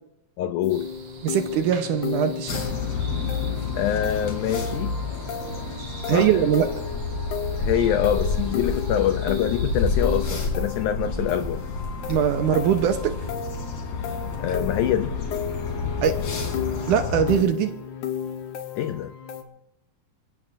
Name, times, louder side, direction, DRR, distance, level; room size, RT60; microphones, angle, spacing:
voice 1, 0.4-0.9 3.7-5.0 6.1-6.4 7.6-11.6 14.4-15.1 18.8-19.1, left 10 dB, 85° left, 10 dB, 1.7 m, -25 dB
sound 1, 0.6-19.4, left 8 dB, 65° left, 2.3 m, -34 dB
sound 2, 0.7-10.4, right 4 dB, 45° right, 2.1 m, -45 dB
voice 2, 1.2-2.6 6.1-6.7 12.1-13.1 16.0-16.2 16.9-17.7, right 9 dB, 70° right, 7 dB, 2.1 m, -21 dB
sound 3, 2.5-17.4, left 4 dB, 50° left, 3.8 m, -29 dB
27.0 x 16.5 x 2.6 m, 0.95 s
omnidirectional pair, 4.3 m